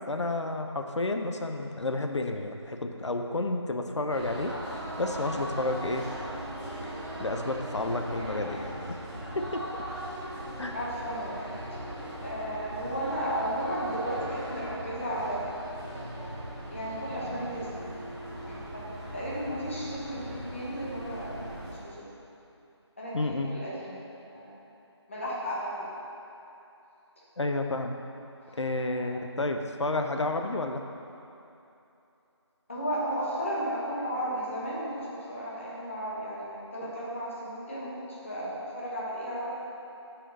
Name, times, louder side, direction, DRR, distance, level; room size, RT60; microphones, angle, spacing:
voice 1, 0.0-6.1 6.8-6.9 7.2-8.9 9.4-9.8 10.6-10.8 23.1-23.5 27.4-28.0 28.6-30.8, left 2 dB, 80° left, 5 dB, 0.7 m, -31 dB
sound 1, 4.1-21.7, right 1 dB, 5° right, 1.3 m, -39 dB
voice 2, 10.7-11.4 12.2-15.5 16.7-17.8 18.4-22.0 23.0-24.0 24.3-24.6 25.1-25.9 28.4-28.6 28.9-29.1 32.7-39.5, right 1 dB, 25° left, -7 dB, 1.4 m, -34 dB
6.0 x 4.9 x 6.6 m, 2.9 s
figure-of-eight pair, 175°, 15 cm